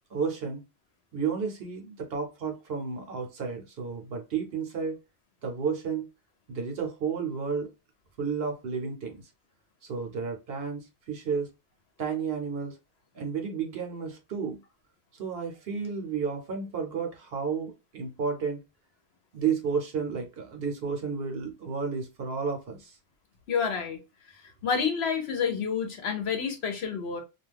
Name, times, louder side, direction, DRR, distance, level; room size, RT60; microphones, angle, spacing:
voice 1, 0.1-0.6 1.1-5.0 5.4-6.1 6.5-7.7 8.2-9.2 9.8-11.5 12.0-12.7 13.1-14.6 15.2-18.6 19.3-22.9, right 5 dB, 65° right, 0.8 m, -32 dB
voice 2, 23.5-24.0 24.6-27.2, left 6 dB, 65° left, 0.9 m, -29 dB
2.3 x 2.3 x 3.2 m
omnidirectional pair, 1.2 m